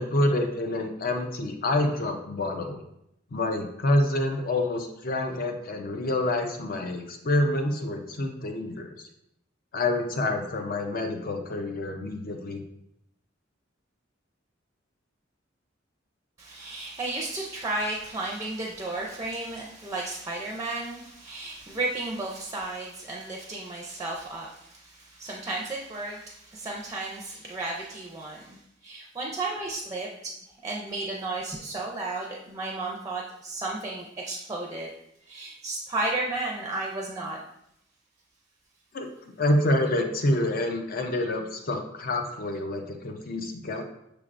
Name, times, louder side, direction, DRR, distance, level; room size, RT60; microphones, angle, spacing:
voice 1, 0.0-2.8 3.3-8.9 9.7-12.6 38.9-43.8, left 1 dB, 50° left, 5 dB, 0.5 m, -27 dB
voice 2, 16.4-30.3 30.6-34.9 35.2-37.4, right 2 dB, 15° right, -1 dB, 0.4 m, -33 dB
5.8 x 3.3 x 2.5 m, 0.79 s
head